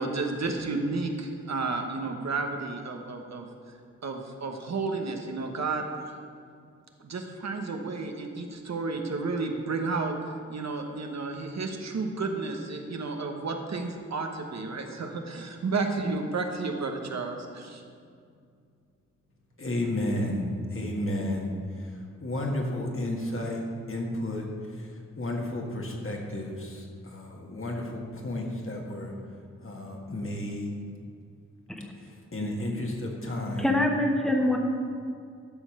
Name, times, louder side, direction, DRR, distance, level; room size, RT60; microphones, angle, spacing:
voice 1, 0.0-3.5 4.0-5.9 7.0-17.8, right 3 dB, 65° right, 3 dB, 1.1 m, -32 dB
voice 2, 19.6-29.1 29.6-30.7 32.0-33.8, left 1 dB, 45° left, 0 dB, 1.7 m, -32 dB
voice 3, 33.6-34.6, left 1 dB, ahead, 2 dB, 1.3 m, -24 dB
12.5 x 5.4 x 6.6 m, 2.3 s
wide cardioid pair, 90°, 29 cm